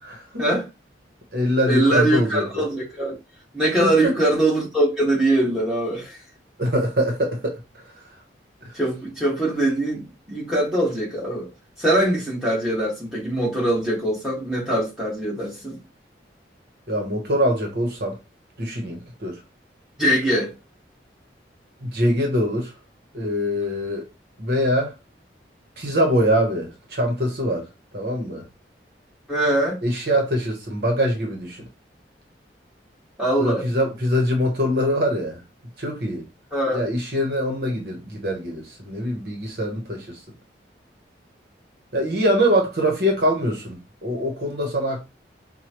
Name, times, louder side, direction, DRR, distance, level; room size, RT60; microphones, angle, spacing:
voice 1, 0.0-0.4 1.3-2.6 3.8-4.1 6.6-7.6 8.6-8.7 16.9-18.2 18.6-19.4 21.8-22.7 23.1-24.1 24.4-25.0 25.8-28.5 29.8-31.7 33.4-35.4 35.8-36.2 36.7-40.2 41.9-45.1, equal, 60° right, 1.0 m, -23 dB
voice 2, 1.6-3.2 3.5-6.2 8.7-11.5 11.8-15.8 20.0-20.5 29.3-29.8 33.2-33.7 36.5-36.8, right 1 dB, 5° right, 1.8 m, -22 dB
4.7 x 2.3 x 3.0 m
head